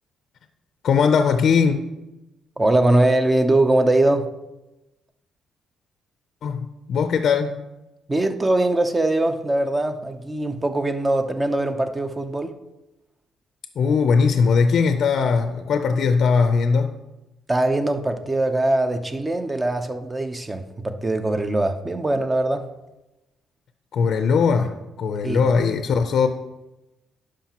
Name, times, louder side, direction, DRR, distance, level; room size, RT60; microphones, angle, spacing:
voice 1, 0.8-1.8 6.4-7.6 13.8-17.0 23.9-26.3, left 5 dB, 65° left, 7 dB, 0.5 m, -20 dB
voice 2, 2.6-4.3 8.1-12.5 17.5-22.7 25.2-25.4, right 2 dB, 20° right, 7 dB, 0.7 m, -21 dB
11.5 x 4.9 x 2.9 m, 0.99 s
cardioid pair, 90°, 0 cm